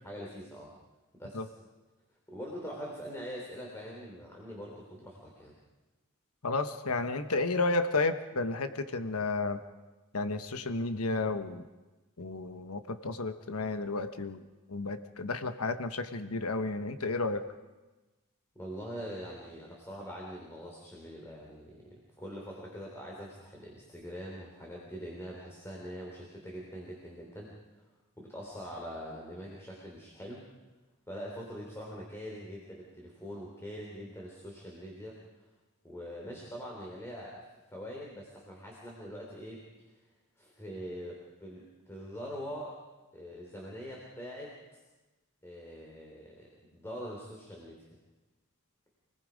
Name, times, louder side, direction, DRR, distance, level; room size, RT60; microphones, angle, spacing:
voice 1, 0.0-0.7 1.1-1.5 2.3-5.5 18.6-27.5 28.2-30.5 31.1-35.2 35.8-39.9 40.4-42.8 43.1-44.5 45.4-47.8, equal, 10° left, -2 dB, 3.5 m, -43 dB
voice 2, 6.4-9.6 10.1-11.6 12.2-14.4 14.7-17.4, left 3 dB, 90° left, 9 dB, 1.2 m, -32 dB
28.5 x 19.5 x 5.3 m, 1.2 s
head